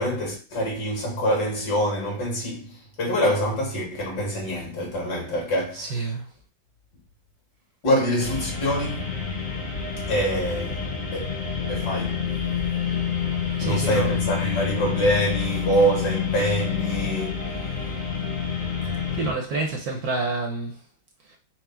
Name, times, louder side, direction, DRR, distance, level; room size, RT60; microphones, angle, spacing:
voice 1, 0.0-6.1 7.8-9.1 10.1-10.8 11.1-11.3 11.7-12.2 13.6-17.5, equal, 60° left, 2.1 m, -25 dB
voice 2, 5.7-6.2 13.6-14.2 19.2-20.7, right 3 dB, 65° right, 1.0 m, -28 dB
sound 1, 8.2-19.3, left 7 dB, 40° left, 1.2 m, -28 dB
4.6 x 2.1 x 4.3 m
omnidirectional pair, 2.1 m